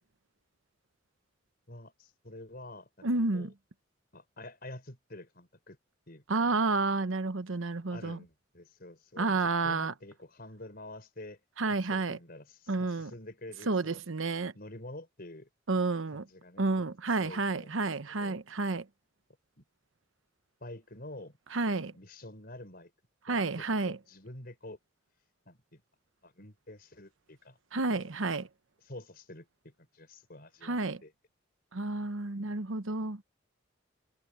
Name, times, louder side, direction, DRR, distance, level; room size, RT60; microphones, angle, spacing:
voice 1, 1.7-3.1 3.3-3.5 4.1-5.8 6.1-6.6 7.8-11.4 11.7-14.0 14.5-15.5 16.1-16.7 17.1-17.7 18.2-18.4 19.6-19.7 20.6-21.4 21.7-22.9 23.3-24.8 25.5-25.8 26.2-27.6 27.9-28.1 28.8-31.1, left 1 dB, 50° left, 5.2 m, -48 dB
voice 2, 3.0-3.5 6.3-8.2 9.2-9.9 11.6-12.2 12.7-13.1 13.7-14.5 15.7-16.3 16.6-18.8 21.5-21.9 23.3-24.0 27.7-28.5 30.6-31.0 31.7-33.2, right 3 dB, 85° right, 1.0 m, -30 dB
head